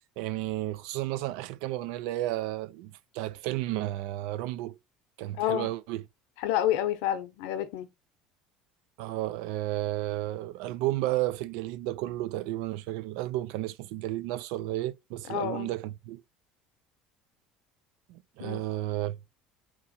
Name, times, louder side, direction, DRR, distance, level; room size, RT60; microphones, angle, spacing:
voice 1, 0.2-4.8 5.2-6.0 9.0-16.2 18.1-19.2, right 15 dB, 80° right, 0.4 m, -32 dB
voice 2, 5.4-5.7 6.4-7.9 15.3-15.7 18.4-18.6, left 12 dB, 85° left, 0.7 m, -29 dB
3.5 x 2.9 x 4.2 m
cardioid pair, 160°, 0 cm